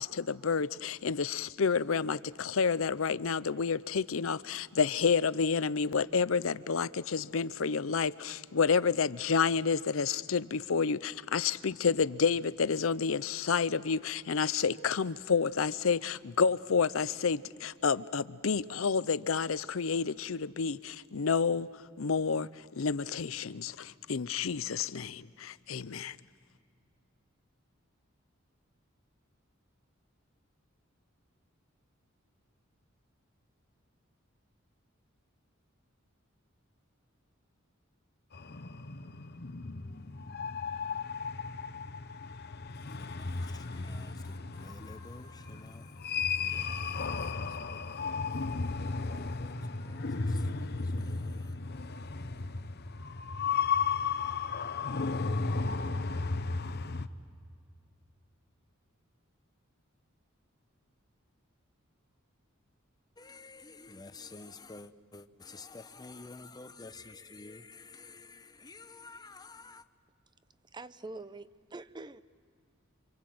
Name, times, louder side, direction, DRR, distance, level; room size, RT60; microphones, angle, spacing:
voice 1, 0.0-21.7 22.0-22.5 22.8-26.2, left 5 dB, 85° left, 0.6 m, -29 dB
sound 1, 38.3-57.1, left 4 dB, 55° left, 0.9 m, -34 dB
voice 2, 43.1-47.8 49.0-50.5 51.0-51.5 63.2-69.8, left 3 dB, 20° left, 0.8 m, -51 dB
voice 3, 70.7-72.2, right 2 dB, 20° right, 0.7 m, -44 dB
28.5 x 26.0 x 7.8 m
head